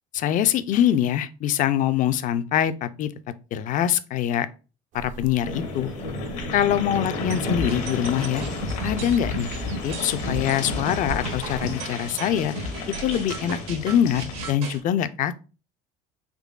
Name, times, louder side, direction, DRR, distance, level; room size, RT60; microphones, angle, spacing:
voice 1, 0.1-3.1 3.5-4.5 4.9-5.9 6.5-8.4 8.8-9.5 9.8-12.5 13.0-15.4, left 10 dB, 45° left, 0.4 m, -24 dB
sound 1, 4.9-11.7, right 6 dB, 45° right, 0.5 m, -43 dB
sound 2, 5.4-14.6, left 3 dB, 75° left, 0.9 m, -33 dB
sound 3, 7.3-14.8, right 1 dB, 75° right, 1.1 m, -33 dB
3.7 x 3.1 x 2.3 m
hypercardioid pair, 75°, 18 cm